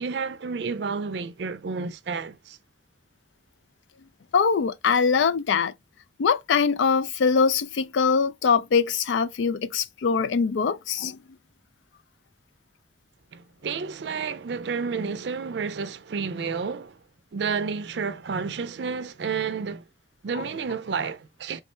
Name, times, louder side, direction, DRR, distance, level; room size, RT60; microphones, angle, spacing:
voice 1, 0.0-2.6 13.3-17.0 17.3-19.9 20.2-21.6, right 5 dB, 65° right, 0.4 m, -30 dB
voice 2, 4.3-5.7 6.2-11.2, left 5 dB, 80° left, 0.4 m, -22 dB
3.6 x 2.1 x 4.3 m
head